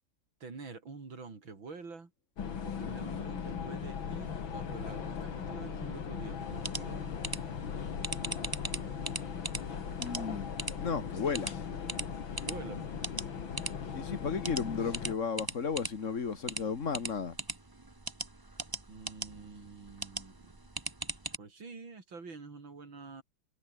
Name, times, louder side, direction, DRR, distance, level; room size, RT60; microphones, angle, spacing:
voice 1, 0.4-2.1 2.6-7.2 12.4-12.9 18.9-20.6 21.4-23.2, right 4 dB, 80° right, 4.8 m, -47 dB
sound 1, 2.4-15.2, left 7 dB, 80° left, 2.8 m, -39 dB
sound 2, 6.4-21.4, right 2 dB, 15° right, 1.1 m, -41 dB
voice 2, 9.9-10.5 10.8-11.5 13.9-17.4, left 5 dB, 40° left, 2.0 m, -34 dB
omnidirectional pair, 2.1 m